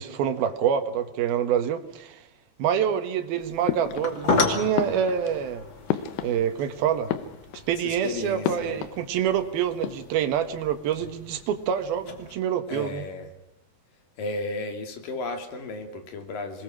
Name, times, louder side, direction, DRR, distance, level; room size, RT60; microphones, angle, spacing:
voice 1, 0.0-2.2 2.6-5.6 6.2-7.1 7.7-13.1, right 9 dB, 75° right, 7 dB, 3.4 m, -26 dB
sound 1, 3.4-12.3, left 3 dB, 35° left, 2.8 m, -34 dB
sound 2, 3.7-4.4 4.7-6.7 7.0-7.8 8.4-9.4 9.7-10.2, left 11 dB, 85° left, 3.2 m, -32 dB
voice 2, 7.8-8.8 12.7-13.3 14.2-16.6, left 3 dB, 60° left, 6 dB, 4.3 m, -34 dB
27.0 x 21.5 x 6.2 m, 0.92 s
omnidirectional pair, 4.5 m